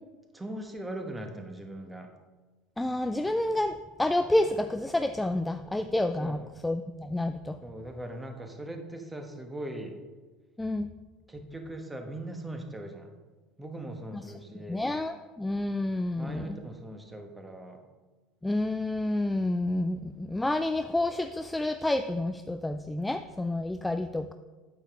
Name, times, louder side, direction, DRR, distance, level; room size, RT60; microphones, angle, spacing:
voice 1, 0.3-2.1 6.2-6.3 7.6-10.0 11.3-13.1 13.6-14.9 16.2-17.8, right 1 dB, 10° right, 4 dB, 1.2 m, -40 dB
voice 2, 2.8-7.6 10.6-10.9 14.1-14.2 14.7-16.6 18.4-24.3, left 1 dB, 10° left, 9 dB, 0.3 m, -29 dB
8.7 x 6.6 x 3.6 m, 1.3 s
figure-of-eight pair, 70°, 0 cm